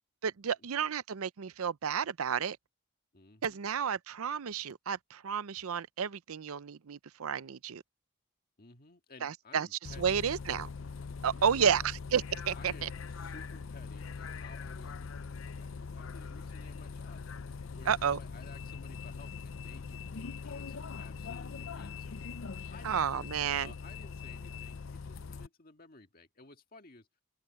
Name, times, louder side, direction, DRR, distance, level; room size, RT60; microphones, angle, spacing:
voice 1, 0.2-2.6 3.4-7.8 9.2-9.7 10.0-10.7 11.2-12.9 17.9-18.2 22.8-23.7, right 7 dB, 85° right, 0.6 m, -31 dB
voice 2, 3.1-3.6 8.6-10.2 11.3-11.9 12.5-17.2 17.7-22.3 22.7-27.1, left 3 dB, 45° left, 1.8 m, -56 dB
Bus, 9.8-25.5, left 5 dB, 65° left, 0.6 m, -42 dB
open air
head